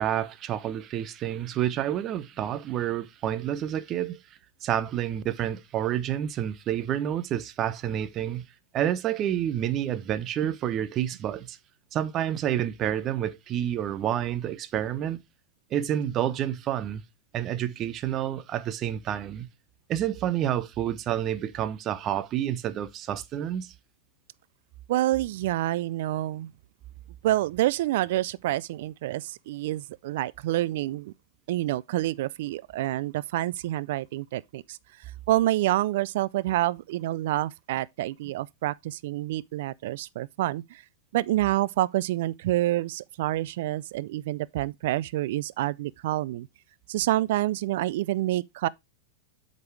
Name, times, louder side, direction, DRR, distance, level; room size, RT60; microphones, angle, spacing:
voice 1, 0.0-4.2 4.6-8.4 8.7-11.6 11.9-15.2 15.7-17.0 17.3-19.5 19.9-23.7, right 11 dB, 35° right, 1.0 m, -29 dB
voice 2, 24.9-26.5 27.2-31.1 31.5-34.8 35.3-40.8 41.1-46.5 46.9-48.7, right 15 dB, 60° right, 0.4 m, -27 dB
8.0 x 5.3 x 4.6 m
hypercardioid pair, 95°, 0 cm